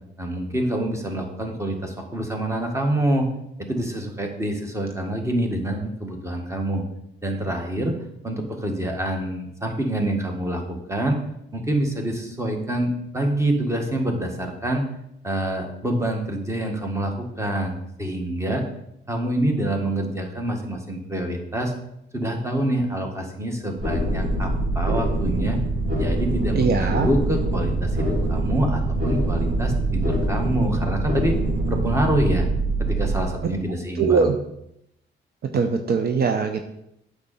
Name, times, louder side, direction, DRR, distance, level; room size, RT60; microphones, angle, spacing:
voice 1, 0.2-3.3 3.6-6.8 7.2-7.9 8.2-11.2 11.5-14.9 15.2-18.6 19.1-21.7 22.1-25.6 26.0-31.3 31.7-32.5 32.8-34.3, right 1 dB, 15° right, 2 dB, 1.8 m, -26 dB
sound 1, 23.8-33.2, right 2 dB, 70° right, 3.8 m, -24 dB
voice 2, 26.5-27.1 34.0-34.3 35.5-36.6, right 5 dB, 50° right, 6 dB, 0.7 m, -21 dB
8.5 x 6.6 x 4.2 m, 0.80 s
cardioid pair, 90°, 20 cm